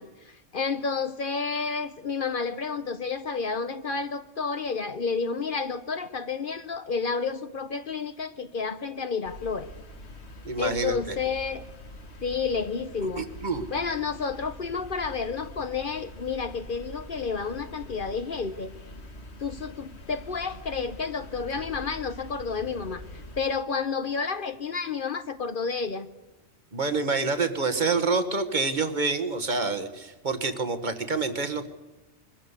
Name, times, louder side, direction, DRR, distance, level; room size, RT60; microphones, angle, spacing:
voice 1, 0.0-9.7 10.6-11.6 12.2-13.2 13.7-18.7 19.4-26.1, left 5 dB, 50° left, 11 dB, 0.9 m, -30 dB
sound 1, 9.3-23.4, left 1 dB, 70° left, 2.0 m, -44 dB
voice 2, 10.4-11.1 13.2-13.7 26.7-31.7, right 4 dB, 40° right, 9 dB, 1.4 m, -27 dB
22.0 x 15.0 x 8.2 m, 1.1 s
omnidirectional pair, 1.2 m